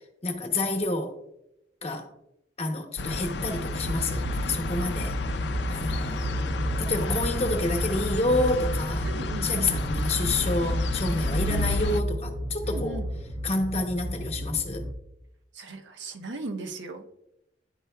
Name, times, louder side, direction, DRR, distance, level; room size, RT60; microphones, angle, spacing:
voice 1, 0.2-1.1 1.8-2.1 2.6-5.1 5.7-6.4 6.8-9.1 9.4-13.0 13.4-14.8, left 2 dB, 35° left, 0.9 m, -28 dB
sound 1, 3.0-12.0, left 2 dB, 70° left, 0.5 m, -31 dB
sound 2, 3.7-14.9, equal, 5° right, 0.3 m, -32 dB
voice 2, 9.0-9.8 11.5-11.8 12.6-13.1 15.5-17.1, right 2 dB, 85° right, 0.7 m, -38 dB
10.5 x 4.5 x 2.3 m
head